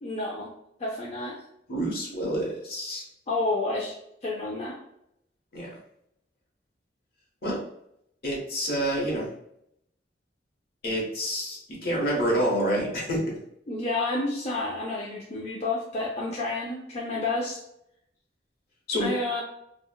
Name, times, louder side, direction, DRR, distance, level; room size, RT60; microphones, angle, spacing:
voice 1, 0.0-0.5 0.8-1.4 3.3-3.9 4.2-4.8 13.7-17.6 19.0-19.4, left 2 dB, 40° left, -3 dB, 0.5 m, -30 dB
voice 2, 1.7-3.0 5.5-5.8 7.4-7.6 8.2-9.3 10.8-13.2 18.9-19.1, equal, 60° left, -3 dB, 1.2 m, -28 dB
4.3 x 2.2 x 2.2 m, 0.76 s
head